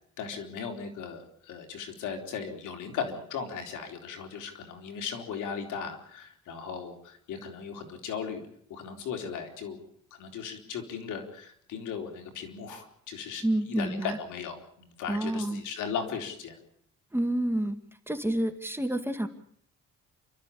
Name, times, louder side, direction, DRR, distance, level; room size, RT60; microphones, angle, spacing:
voice 1, 0.2-8.4 8.7-9.8 10.2-16.6, left 6 dB, 85° left, 5 dB, 3.9 m, -37 dB
voice 2, 13.4-14.2 15.1-15.6 17.1-17.8 18.1-19.3, right 1 dB, 10° right, 7 dB, 2.1 m, -28 dB
28.5 x 13.0 x 8.5 m, 0.65 s
cardioid pair, 90°, 30 cm